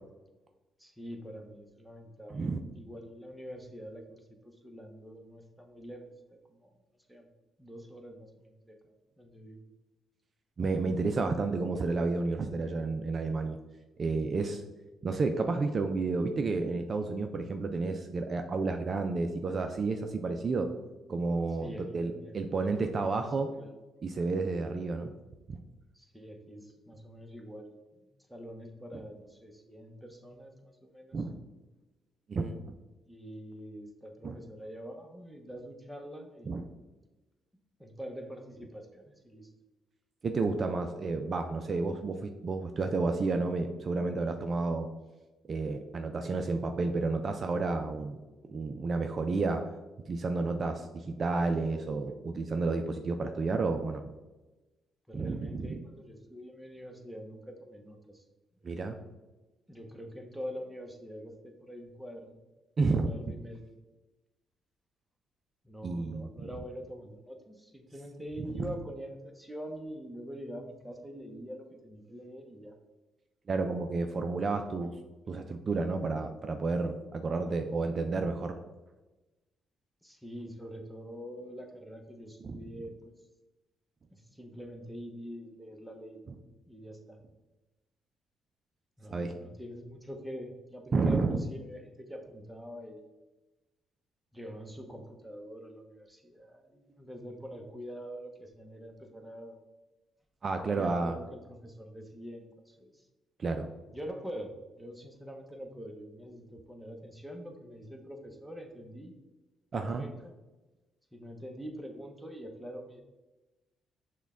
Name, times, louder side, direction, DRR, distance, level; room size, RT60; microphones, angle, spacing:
voice 1, 0.8-2.3 2.7-6.7 7.1-7.3 7.6-8.8 9.2-9.6 21.6-22.5 22.8-23.7 25.9-27.7 28.3-31.2 33.1-36.5 37.8-39.5 55.1-58.2 59.7-62.4 63.0-63.7 65.6-72.7 80.0-83.1 84.1-86.2 86.7-87.2 89.0-93.0 94.3-99.6 100.6-103.1 103.9-109.1 109.8-110.3 111.1-113.0, equal, ahead, 3 dB, 0.7 m, -45 dB
voice 2, 10.6-13.6 14.0-14.6 15.0-20.7 21.1-23.5 24.0-25.1 25.5-25.6 31.1-31.4 32.3-32.7 34.2-34.4 36.5-36.6 40.2-44.9 45.5-48.2 48.5-49.6 50.0-54.0 55.1-55.4 55.7-55.8 58.6-59.0 62.8-63.1 65.8-66.5 68.5-68.7 73.5-74.9 75.3-78.6 82.4-82.6 89.1-89.3 90.9-91.4 100.4-101.2 103.4-103.7 109.7-110.0, right 3 dB, 40° right, 6 dB, 0.3 m, -31 dB
6.2 x 2.2 x 3.5 m, 1.1 s
cardioid pair, 90°, 0 cm